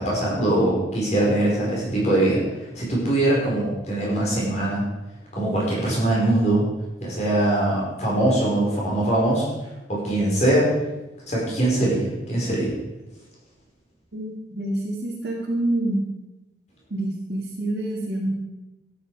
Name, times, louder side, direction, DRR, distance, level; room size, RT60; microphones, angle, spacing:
voice 1, 0.0-2.4 2.7-4.8 5.3-6.7 7.0-9.5 9.9-10.7 11.3-12.7, right 1 dB, 35° left, -4 dB, 5.1 m, -22 dB
voice 2, 14.1-16.0 16.9-18.3, right 1 dB, 65° right, -5 dB, 2.1 m, -27 dB
13.5 x 9.7 x 5.0 m, 1.0 s
head